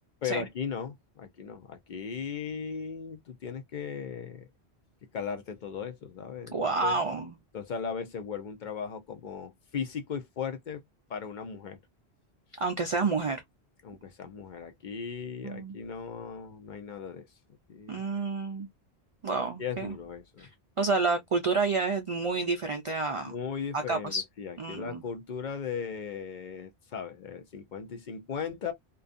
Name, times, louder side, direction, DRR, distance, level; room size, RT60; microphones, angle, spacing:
voice 1, 0.2-4.5 5.1-6.6 6.8-6.9 7.5-10.8 11.1-11.8 12.5-12.6 13.8-17.3 17.7-18.0 19.6-20.5 23.2-28.7, left 6 dB, 55° left, 0.6 m, -37 dB
voice 2, 6.5-7.4 12.6-13.4 15.4-15.8 17.9-18.7 19.2-19.9 20.4-20.5 20.8-23.3 23.7-24.2 24.6-25.0, right 4 dB, 60° right, 0.3 m, -29 dB
2.5 x 2.2 x 2.4 m
omnidirectional pair, 1.1 m